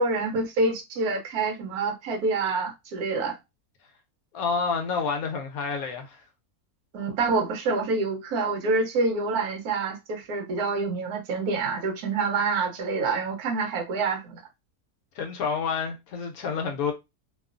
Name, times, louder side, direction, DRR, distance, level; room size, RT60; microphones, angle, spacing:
voice 1, 0.0-3.4 6.9-14.4, right 3 dB, 75° right, 1.2 m, -27 dB
voice 2, 4.3-6.2 15.1-16.9, left 5 dB, 75° left, 1.0 m, -29 dB
3.0 x 2.2 x 2.4 m
omnidirectional pair, 1.7 m